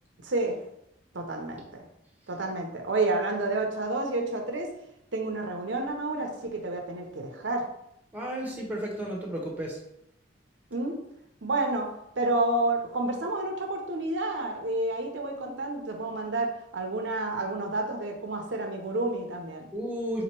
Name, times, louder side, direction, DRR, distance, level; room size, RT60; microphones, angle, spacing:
voice 1, 0.2-0.6 1.1-1.8 2.3-4.7 5.1-7.6 10.7-10.9 11.4-11.9 12.2-19.7, right 2 dB, 70° right, 2 dB, 0.8 m, -30 dB
voice 2, 8.1-9.8 19.7-20.2, equal, 10° right, -2 dB, 1.1 m, -33 dB
3.8 x 3.0 x 4.5 m, 0.77 s
head